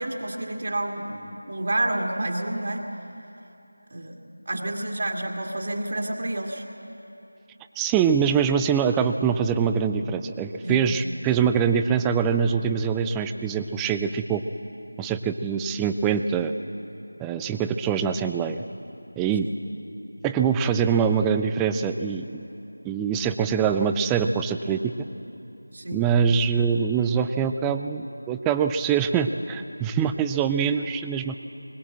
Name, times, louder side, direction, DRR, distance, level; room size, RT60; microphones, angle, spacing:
voice 1, 0.0-2.9 3.9-4.2 4.5-6.6 10.6-10.8 19.4-19.6 25.7-26.1, right 1 dB, 50° right, 0 dB, 2.0 m, -29 dB
voice 2, 7.8-14.4 15.0-16.5 17.2-18.6 19.2-19.5 20.2-22.4 22.8-24.9 25.9-31.4, right 7 dB, 5° right, 8 dB, 0.4 m, -24 dB
21.0 x 20.0 x 7.7 m, 2.9 s
figure-of-eight pair, 170°, 0 cm